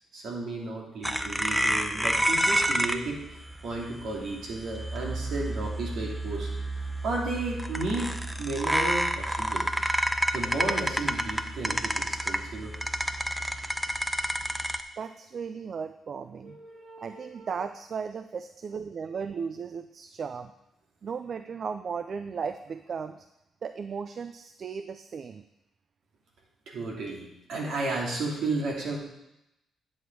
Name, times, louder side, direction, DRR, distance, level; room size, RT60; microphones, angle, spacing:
voice 1, 0.1-3.2 3.6-6.5 6.7-8.1 8.4-9.7 10.3-12.7 16.4-17.6 26.7-29.0, right 2 dB, 70° right, -2 dB, 2.5 m, -33 dB
sound 1, 1.0-14.8, right 1 dB, 5° right, 0.7 m, -29 dB
voice 2, 15.0-16.6 17.0-20.5 21.0-23.3 23.6-25.4, right 6 dB, 55° right, 11 dB, 0.4 m, -36 dB
9.8 x 6.4 x 4.6 m, 0.88 s
supercardioid pair, 60°, 0 cm